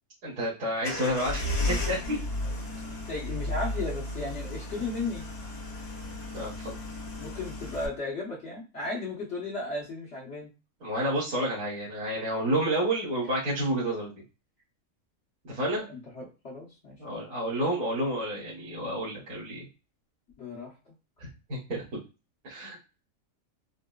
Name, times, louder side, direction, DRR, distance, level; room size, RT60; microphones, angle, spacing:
voice 1, 0.2-2.2 6.3-6.7 10.8-14.1 15.4-15.8 17.0-19.7 21.2-21.8 22.4-22.8, right 1 dB, 80° right, -9 dB, 1.9 m, -30 dB
sound 1, 0.8-7.9, left 2 dB, 80° left, 1.5 m, -34 dB
voice 2, 3.1-5.2 7.2-10.5 15.9-17.3 20.4-20.7, left 2 dB, 55° left, -5 dB, 1.3 m, -35 dB
4.8 x 2.0 x 2.3 m, 0.31 s
omnidirectional pair, 1.5 m